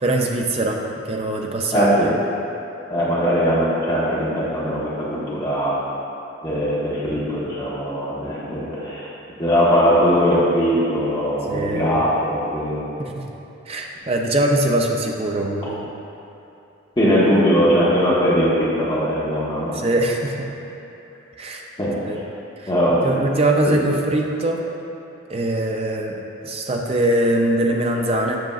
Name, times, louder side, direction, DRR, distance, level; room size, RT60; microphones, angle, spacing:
voice 1, 0.0-2.1 11.5-11.9 13.0-13.2 13.7-15.9 19.7-20.5 21.4-21.6 22.0-22.2 22.6-22.7 23.0-24.6 25.3-28.4, right 1 dB, 30° right, 1 dB, 0.4 m, -22 dB
voice 2, 1.7-2.1 2.9-5.7 6.4-9.1 9.4-12.8 17.0-19.7 21.8-22.2 22.7-23.0 23.7-23.8, equal, 20° left, -8 dB, 1.2 m, -20 dB
7.7 x 6.0 x 2.4 m, 3.0 s
head